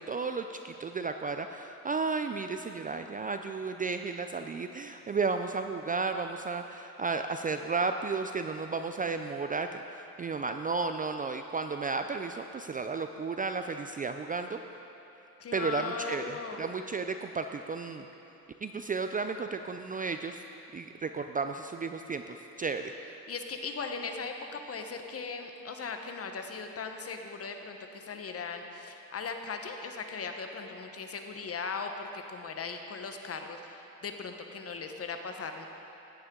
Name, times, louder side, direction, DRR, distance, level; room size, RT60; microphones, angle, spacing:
voice 1, 0.0-14.6 15.5-18.1 18.6-20.4 20.7-22.9, right 4 dB, 25° right, 7 dB, 0.4 m, -33 dB
voice 2, 15.4-16.7 23.3-35.7, left 4 dB, 40° left, 5 dB, 1.1 m, -38 dB
15.0 x 9.7 x 3.8 m, 3.0 s
cardioid pair, 95°, 36 cm